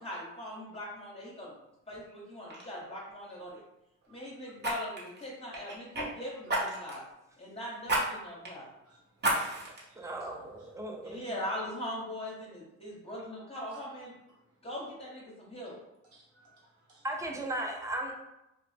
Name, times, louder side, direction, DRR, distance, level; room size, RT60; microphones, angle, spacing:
voice 1, 0.0-1.6 1.9-3.6 4.1-7.0 7.4-8.7 11.0-14.1 14.6-15.7, left 1 dB, 20° left, -5 dB, 0.8 m, -41 dB
Fire, 1.9-2.1 2.5-2.7 4.6-6.1 6.5-7.0 7.9-8.0 8.4-8.5 9.2-9.8 10.3-10.4, right 1 dB, 35° right, 0.9 m, -31 dB
voice 2, 9.3-10.3 10.6-10.7 13.7-13.8 16.1-17.1, right 2 dB, 55° right, -4 dB, 1.1 m, -59 dB
voice 3, 10.0-11.2 17.0-18.1, right 1 dB, 10° right, 1 dB, 0.5 m, -36 dB
2.4 x 2.0 x 3.3 m, 0.88 s
cardioid pair, 90°, 30 cm